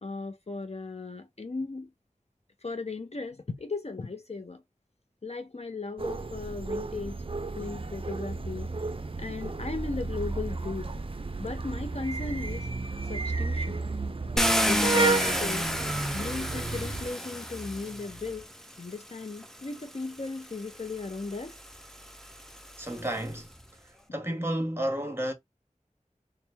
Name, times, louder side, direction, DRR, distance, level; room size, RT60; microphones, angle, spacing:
voice 1, 0.0-1.9 2.6-4.6 5.2-7.2 7.5-8.7 9.2-11.0 11.4-12.7 13.1-13.8 14.4-15.7 16.1-18.5 18.8-21.5, left 3 dB, 50° left, 0.5 m, -36 dB
sound 1, 6.0-17.1, right 3 dB, 45° right, 0.4 m, -32 dB
Car, 14.4-18.5 19.4-19.5 20.0-23.3, equal, 5° left, 0.6 m, -30 dB
voice 2, 22.8-23.5 24.1-25.3, right 1 dB, 20° right, 1.2 m, -31 dB
4.4 x 2.1 x 3.3 m
wide cardioid pair, 45°, 13 cm